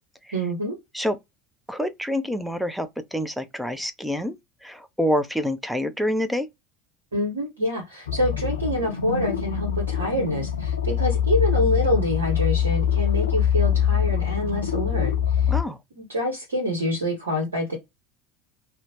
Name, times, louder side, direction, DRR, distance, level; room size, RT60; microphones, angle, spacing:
voice 1, 0.3-0.7 7.1-15.5 16.0-17.8, left 1 dB, 75° right, 0.8 m, -26 dB
voice 2, 1.7-4.4 4.6-6.5 15.5-15.8, equal, ahead, 0.5 m, -27 dB
sound 1, 8.1-15.6, left 9 dB, 75° left, 0.4 m, -24 dB
2.7 x 2.1 x 2.8 m
figure-of-eight pair, 70°, 0 cm